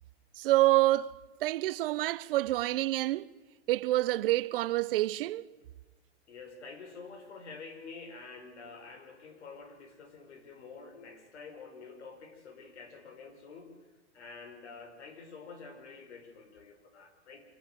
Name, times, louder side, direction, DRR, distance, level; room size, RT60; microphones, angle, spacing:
voice 1, 0.4-1.2 1.4-3.3 3.7-5.4, right 16 dB, 55° right, 0.8 m, -27 dB
voice 2, 6.3-13.8 14.1-17.4, left 4 dB, 85° left, 5.4 m, -48 dB
25.0 x 18.0 x 9.2 m
supercardioid pair, 155°, 34 cm